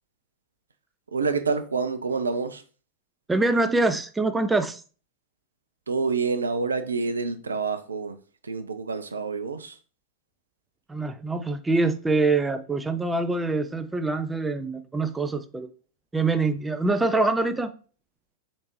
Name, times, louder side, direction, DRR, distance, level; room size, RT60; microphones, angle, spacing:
voice 1, 1.1-2.6 5.9-8.2 8.4-9.8, right 4 dB, 75° right, 0.4 m, -27 dB
voice 2, 3.3-4.8 10.9-15.7 16.1-17.7, right 3 dB, 10° right, 0.4 m, -24 dB
4.2 x 3.3 x 3.0 m
figure-of-eight pair, 90°, 0 cm